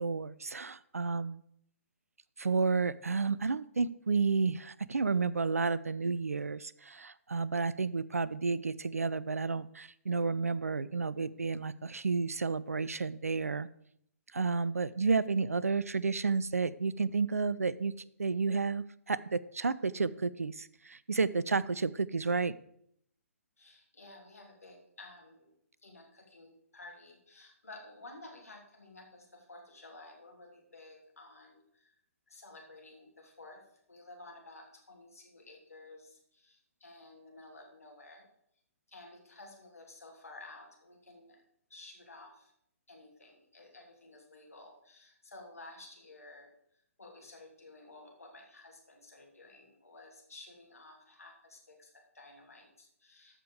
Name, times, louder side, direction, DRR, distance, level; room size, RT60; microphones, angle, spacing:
voice 1, 0.0-1.4 2.4-13.7 14.3-17.9 18.2-22.5, right 4 dB, 75° right, 19 dB, 0.5 m, -31 dB
voice 2, 23.6-25.6 25.8-31.9 32.3-38.3 38.9-41.4 41.7-42.5 42.9-46.5 47.0-53.4, left 2 dB, 70° left, 0 dB, 2.9 m, -53 dB
13.5 x 5.1 x 4.8 m, 0.71 s
figure-of-eight pair, 130°, 8 cm